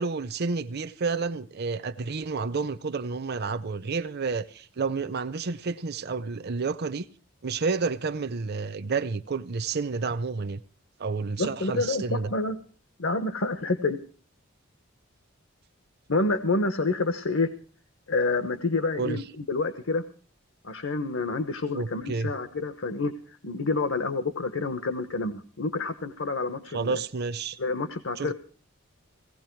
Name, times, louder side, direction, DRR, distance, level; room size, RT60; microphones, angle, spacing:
voice 1, 0.0-7.0 7.4-10.6 11.0-12.3 19.0-19.2 21.7-22.3 26.7-27.6 28.2-28.3, right 4 dB, 50° right, 0.6 m, -30 dB
voice 2, 11.4-12.6 13.0-14.0 16.1-17.5 18.1-20.0 20.6-23.1 23.4-27.0 27.6-28.3, left 3 dB, 65° left, 1.1 m, -28 dB
17.5 x 16.0 x 4.6 m
head